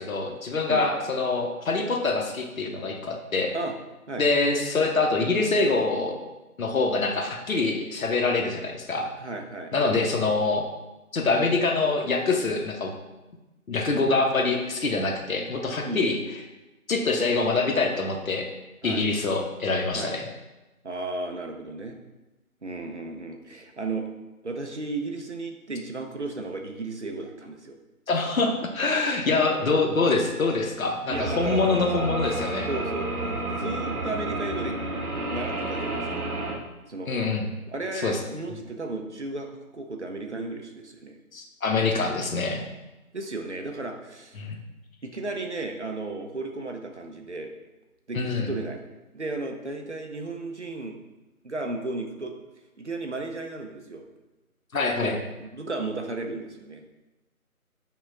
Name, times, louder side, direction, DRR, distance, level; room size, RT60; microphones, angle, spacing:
voice 1, 0.0-3.5 4.2-6.2 6.6-9.1 9.7-10.7 11.1-12.9 13.7-16.2 16.9-18.5 18.8-20.2 28.1-32.7 37.1-37.5 38.0-38.2 41.3-42.6 44.4-44.6 48.1-48.5 54.7-55.2, left 3 dB, 65° left, 2 dB, 0.7 m, -25 dB
voice 2, 9.2-9.7 15.8-16.1 18.8-19.1 19.9-20.1 20.8-22.0 22.6-24.1 24.4-27.8 31.1-31.7 32.7-34.8 35.3-36.2 36.9-37.1 37.7-39.5 39.7-41.2 43.1-44.4 45.0-47.5 48.1-48.8 49.1-51.0 51.4-52.3 52.8-54.0 55.0-56.8, right 3 dB, 50° right, 3 dB, 0.5 m, -34 dB
sound 1, 31.1-36.6, right 2 dB, 90° right, 0.8 m, -30 dB
5.6 x 2.3 x 3.6 m, 1.1 s
figure-of-eight pair, 170°, 44 cm